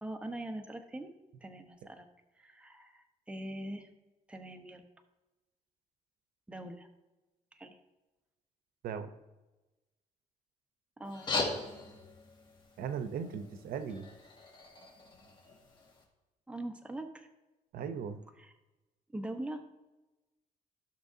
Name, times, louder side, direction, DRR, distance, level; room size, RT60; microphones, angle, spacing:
voice 1, 0.0-1.1 1.4-2.1 2.4-3.9 4.3-4.9 6.5-6.9 7.5-7.8 11.0-11.3 16.5-17.3 18.4-18.5 19.1-19.6, right 1 dB, 10° right, 5 dB, 0.9 m, -42 dB
sound 1, 11.0-16.0, left 3 dB, 35° left, 1.7 m, -40 dB
voice 2, 12.8-14.1 17.7-18.2, right 7 dB, 85° right, 10 dB, 0.7 m, -38 dB
16.0 x 6.2 x 2.7 m, 1.1 s
cardioid pair, 120°, 15 cm